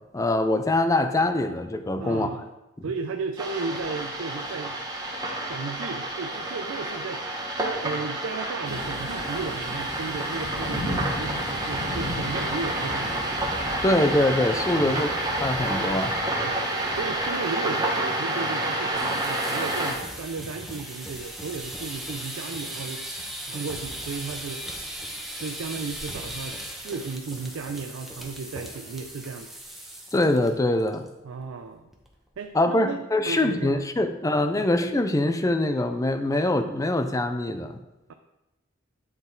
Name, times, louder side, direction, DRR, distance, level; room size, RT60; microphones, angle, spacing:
voice 1, 0.1-2.3 13.8-15.1 15.4-16.2 30.1-31.1 32.5-37.8, left 1 dB, 15° left, 8 dB, 0.4 m, -23 dB
voice 2, 2.0-2.5 2.8-4.8 5.5-13.3 14.8-15.1 16.4-23.1 23.4-24.7 25.3-29.5 31.2-31.9 32.4-33.8 34.6-34.7, right 4 dB, 90° right, 6 dB, 0.4 m, -34 dB
sound 1, 3.4-19.9, right 1 dB, 20° right, 1.2 m, -29 dB
Thunder / Rain, 8.6-17.5, left 1 dB, 80° left, 2.2 m, -37 dB
sound 2, 19.0-30.5 30.8-31.1 31.4-31.5 31.9-32.3, right 1 dB, ahead, 0.9 m, -38 dB
9.2 x 3.9 x 3.9 m, 0.97 s
head